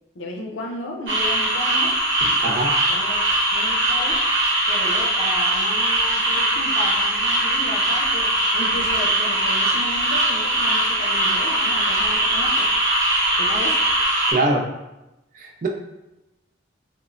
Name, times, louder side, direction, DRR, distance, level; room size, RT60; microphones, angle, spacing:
voice 1, 0.1-2.0 2.9-3.2 3.5-4.2 4.7-12.7 13.4-13.8, left 1 dB, 85° left, 0 dB, 0.5 m, -34 dB
sound 1, 1.1-14.3, right 1 dB, 70° right, 0.9 m, -21 dB
voice 2, 2.4-2.7 14.3-14.7 15.3-15.7, right 2 dB, 40° right, 1 dB, 0.3 m, -22 dB
3.0 x 2.0 x 2.5 m, 0.94 s
head